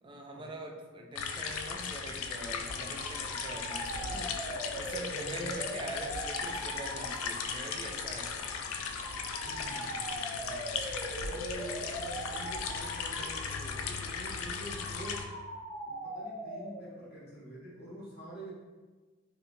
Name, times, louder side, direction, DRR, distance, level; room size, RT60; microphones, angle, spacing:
voice 1, 0.0-4.4 4.7-8.5 10.4-11.0, right 1 dB, 25° right, 1 dB, 0.3 m, -44 dB
sound 1, 1.2-15.3, left 5 dB, 70° left, 0.3 m, -37 dB
sound 2, 2.5-17.1, right 1 dB, 30° left, 1.5 m, -42 dB
voice 2, 5.1-5.5 9.5-10.8 11.2-15.3 15.8-18.5, right 1 dB, 50° left, -6 dB, 1.0 m, -47 dB
3.2 x 2.6 x 2.6 m, 1.3 s
head